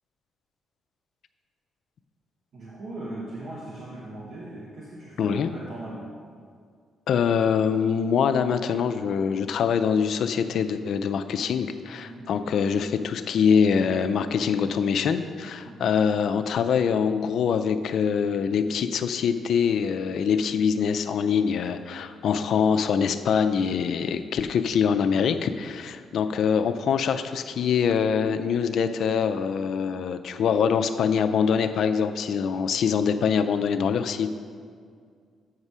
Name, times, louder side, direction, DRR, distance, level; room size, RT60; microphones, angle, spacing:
voice 1, 2.5-6.1 11.9-12.3 15.6-16.0, right 1 dB, 65° right, -5 dB, 1.2 m, -39 dB
voice 2, 5.2-5.5 7.1-34.3, left 6 dB, 70° left, 9 dB, 0.4 m, -24 dB
8.0 x 4.8 x 5.5 m, 2.1 s
cardioid pair, 90°, 0 cm